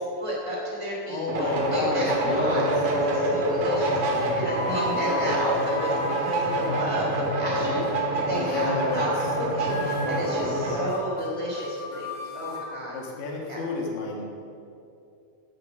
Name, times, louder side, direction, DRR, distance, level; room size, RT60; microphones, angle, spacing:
voice 1, 0.2-2.6 3.0-9.1 9.3-12.1 12.3-12.9 13.5-13.6, equal, 10° right, -5 dB, 3.1 m, -32 dB
voice 2, 1.0-2.7 8.4-9.1 12.9-14.3, left 3 dB, 75° left, -1 dB, 3.3 m, -30 dB
sound 1, 1.3-10.9, right 1 dB, 75° right, 3.3 m, -26 dB
sound 2, 2.7-3.2 4.0-7.3 7.6-7.9 8.3-8.7 8.9-9.0 9.3-9.4 9.6-12.6, left 3 dB, 25° left, 1.7 m, -36 dB
15.5 x 6.7 x 6.0 m, 2.5 s
omnidirectional pair, 4.1 m